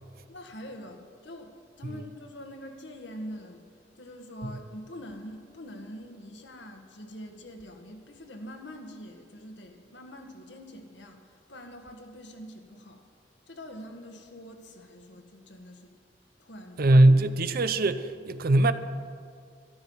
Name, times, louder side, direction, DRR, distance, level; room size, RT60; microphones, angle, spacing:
voice 1, 0.3-3.7 3.9-13.0 13.5-15.9 16.4-16.8, equal, 70° left, 4 dB, 1.6 m, -44 dB
voice 2, 16.8-18.7, right 1 dB, 55° right, 12 dB, 0.6 m, -20 dB
13.5 x 12.5 x 5.6 m, 2.2 s
head